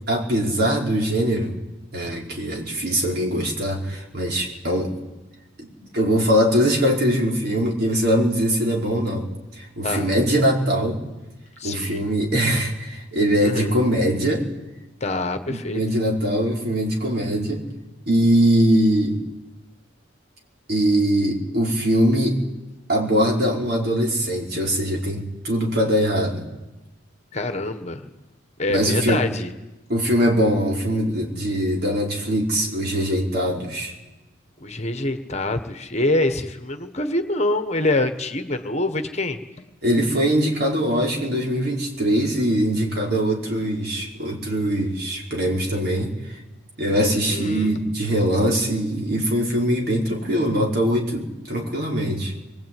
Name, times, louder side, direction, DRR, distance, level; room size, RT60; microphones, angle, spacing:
voice 1, 0.1-1.5 1.9-4.9 5.6-9.3 9.5-11.0 11.6-14.5 15.5-17.6 18.1-19.2 20.7-22.4 22.9-26.4 28.7-29.2 29.9-33.9 39.8-46.4 46.8-52.3, equal, 50° right, 0 dB, 4.9 m, -22 dB
voice 2, 11.6-12.0 13.4-13.7 15.0-15.8 27.3-28.0 28.6-29.5 34.6-39.4 47.3-47.8, left 2 dB, 35° left, 8 dB, 1.5 m, -25 dB
24.5 x 22.0 x 9.3 m, 1.0 s
head